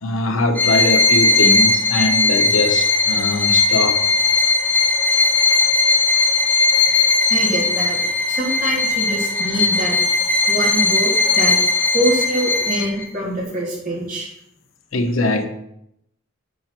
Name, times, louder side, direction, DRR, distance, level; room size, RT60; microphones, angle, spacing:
voice 1, 0.0-4.0 14.9-15.5, left 2 dB, 85° left, 1.1 m, -21 dB
Bowed string instrument, 0.6-13.1, left 3 dB, 5° left, 1.0 m, -18 dB
voice 2, 7.3-8.0 8.3-10.0 10.5-11.6 11.9-14.3, right 1 dB, 40° right, 3.4 m, -24 dB
7.8 x 6.0 x 6.0 m
head